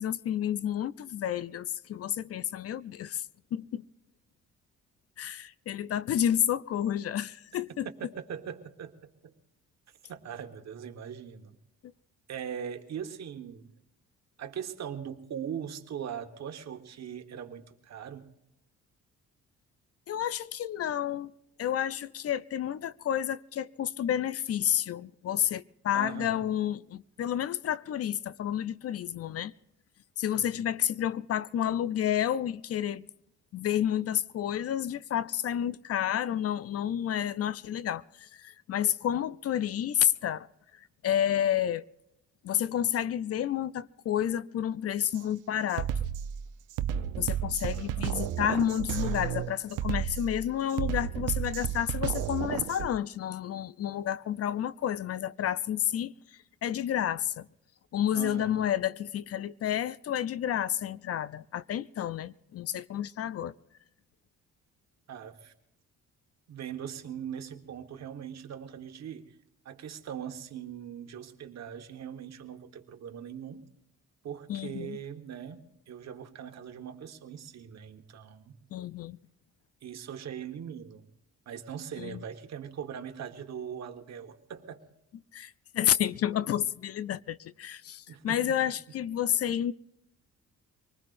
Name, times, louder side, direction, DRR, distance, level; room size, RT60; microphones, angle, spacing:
voice 1, 0.0-3.3 3.5-3.8 5.2-7.9 20.1-21.3 21.6-29.5 30.2-33.1 33.5-40.5 41.0-41.8 42.4-45.9 47.2-56.1 56.6-57.5 57.9-63.5 74.5-75.0 78.7-79.2 82.0-82.2 85.3-89.7, left 10 dB, 50° left, 0.5 m, -30 dB
voice 2, 8.2-9.3 10.1-11.5 12.3-13.7 14.4-18.3 25.9-26.4 30.3-30.5 47.7-48.2 58.1-58.6 65.1-65.5 66.5-69.2 69.6-73.6 74.2-78.6 79.8-81.0 81.5-84.8 88.1-88.4, right 8 dB, 60° right, 1.4 m, -41 dB
Drum kit, 45.0-45.2 45.7-52.9, right 10 dB, 85° right, 0.7 m, -32 dB
25.0 x 19.5 x 2.5 m
cardioid pair, 90°, 30 cm